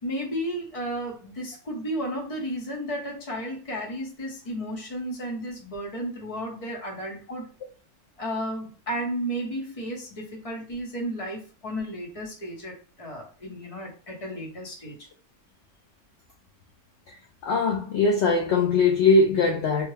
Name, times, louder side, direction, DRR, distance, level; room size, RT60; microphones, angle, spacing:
voice 1, 0.0-7.5 8.2-15.1, equal, 30° left, 0.8 m, -33 dB
voice 2, 17.1-19.9, left 3 dB, 70° left, 0.6 m, -21 dB
3.3 x 2.1 x 3.2 m
omnidirectional pair, 1.7 m